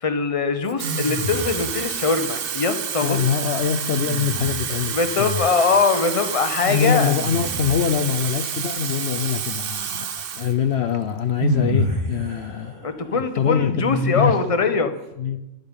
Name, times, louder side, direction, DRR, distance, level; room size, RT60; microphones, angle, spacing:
voice 1, 0.0-3.2 4.9-7.1 12.8-14.9, left 4 dB, 30° left, 9 dB, 1.1 m, -22 dB
Water tap faucet / Fill (with liquid), 0.6-10.6 10.9-11.2, right 8 dB, 55° right, 0.9 m, -29 dB
sound 1, 0.8-2.0 3.7-4.9 6.6-8.6 10.4-10.5 11.4-14.7, equal, 85° right, 4.0 m, -28 dB
voice 2, 3.0-5.5 6.7-10.1 10.3-12.7 13.1-14.4 15.2-15.4, left 8 dB, 65° left, 8 dB, 0.9 m, -24 dB
13.5 x 11.5 x 5.4 m, 0.93 s
omnidirectional pair, 1.2 m